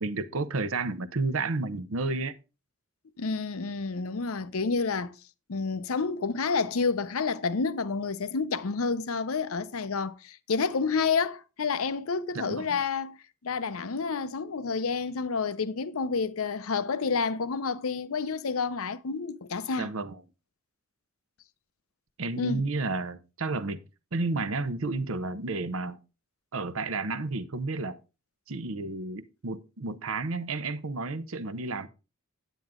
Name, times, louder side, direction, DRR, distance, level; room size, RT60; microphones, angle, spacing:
voice 1, 0.0-2.3 12.4-12.8 19.8-20.2 22.2-23.8 24.1-26.0 26.5-28.0 28.5-31.9, right 3 dB, 75° right, 0.8 m, -31 dB
voice 2, 3.2-5.1 5.5-13.2 13.4-19.9 22.3-22.6, left 4 dB, 80° left, 0.6 m, -29 dB
9.2 x 9.1 x 3.6 m
head